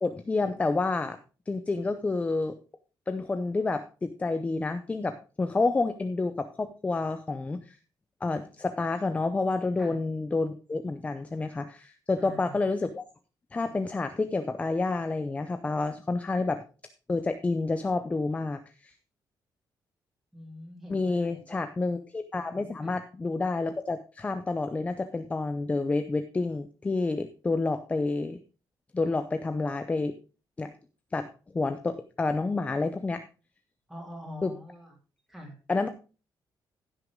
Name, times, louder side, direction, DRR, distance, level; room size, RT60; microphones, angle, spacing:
voice 1, 0.0-1.2 1.5-2.6 3.1-7.8 8.2-13.0 13.5-16.6 17.1-18.9 20.9-28.4 28.9-30.1 30.6-30.7 31.1-31.3 31.5-33.2 34.4-34.5 35.7-35.9, left 3 dB, 15° left, 9 dB, 0.6 m, -29 dB
voice 2, 12.2-12.7 20.3-21.6 22.8-22.9 33.9-34.9 35.3-35.6, left 1 dB, 5° right, 0 dB, 3.5 m, -44 dB
15.0 x 6.4 x 3.7 m, 0.34 s
cardioid pair, 165°, 8 cm